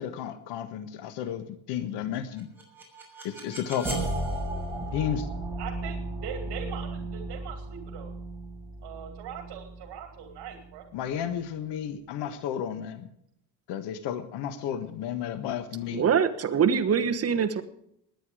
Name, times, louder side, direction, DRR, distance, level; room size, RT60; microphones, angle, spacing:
voice 1, 0.0-2.5 3.2-4.0 4.9-5.3 10.9-13.1 13.7-16.0, left 9 dB, 90° left, 11 dB, 1.5 m, -32 dB
sound 1, 2.4-11.3, right 1 dB, 5° right, 5.6 m, -35 dB
voice 2, 5.6-8.1 8.8-10.9, right 8 dB, 70° right, 5 dB, 2.5 m, -41 dB
voice 3, 15.9-17.6, right 7 dB, 35° right, 9 dB, 1.3 m, -24 dB
20.0 x 9.5 x 4.9 m, 0.73 s
cardioid pair, 135°, 40 cm